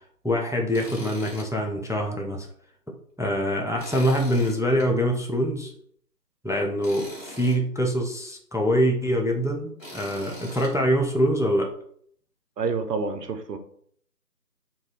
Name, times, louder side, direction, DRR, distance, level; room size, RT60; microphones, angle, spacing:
voice 1, 0.2-2.5 3.2-5.7 6.4-11.7, equal, 5° right, 1 dB, 0.3 m, -24 dB
Tools, 0.7-1.5 1.9-2.0 3.8-4.9 6.8-7.6 9.8-10.7, equal, 50° left, 1.2 m, -41 dB
voice 2, 12.6-13.6, right 4 dB, 75° right, 7 dB, 0.6 m, -28 dB
3.2 x 2.2 x 2.3 m, 0.64 s
figure-of-eight pair, 180°, 50 cm